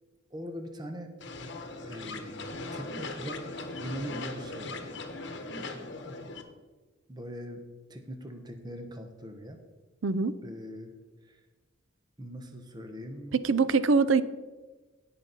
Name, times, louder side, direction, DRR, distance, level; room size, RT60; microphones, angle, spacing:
voice 1, 0.3-1.1 1.8-3.4 3.8-4.9 5.6-5.9 7.1-7.6 7.9-9.6 10.4-10.9 11.2-11.4 12.2-13.4, equal, 20° right, 5 dB, 1.0 m, -41 dB
sound 1, 1.2-6.4, left 2 dB, 65° left, 1.1 m, -39 dB
voice 2, 10.0-10.3 13.4-14.2, right 4 dB, 80° right, 15 dB, 0.5 m, -23 dB
16.0 x 6.0 x 4.0 m, 1.2 s
head